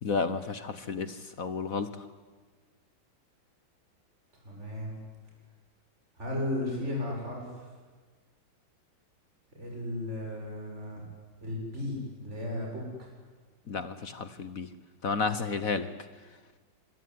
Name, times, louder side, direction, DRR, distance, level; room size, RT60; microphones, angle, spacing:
voice 1, 0.0-2.0 13.7-14.7 15.0-15.9, left 4 dB, 50° left, 13 dB, 1.4 m, -32 dB
voice 2, 4.4-4.9 6.2-7.7 9.5-11.0 11.4-13.1, left 1 dB, 35° right, -1 dB, 7.8 m, -35 dB
25.0 x 21.5 x 9.6 m, 1.4 s
omnidirectional pair, 2.1 m